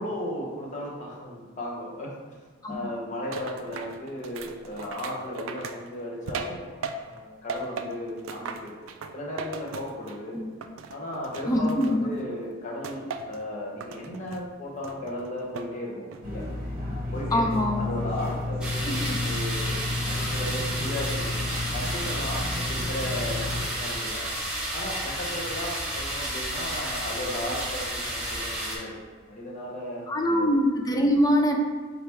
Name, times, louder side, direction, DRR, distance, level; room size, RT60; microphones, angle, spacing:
voice 1, 0.0-2.1 2.7-8.8 9.1-10.4 10.9-16.4 17.1-24.3 24.7-29.0 29.3-30.5, left 1 dB, 40° left, -3 dB, 0.9 m, -35 dB
sound 1, 3.3-7.2 7.5-10.3 10.6-12.2 12.8-13.4 13.8-14.4 14.8-15.7 16.1-16.5, right 4 dB, 75° right, 0.3 m, -38 dB
voice 2, 11.5-12.1 17.3-17.9 18.8-19.2 30.1-31.6, equal, 20° left, 2 dB, 0.4 m, -24 dB
sound 2, 16.2-23.6, left 2 dB, 45° right, 1.0 m, -31 dB
sound 3, 18.6-28.8, right 1 dB, 5° right, 0.9 m, -32 dB
3.9 x 3.0 x 3.4 m, 1.5 s
head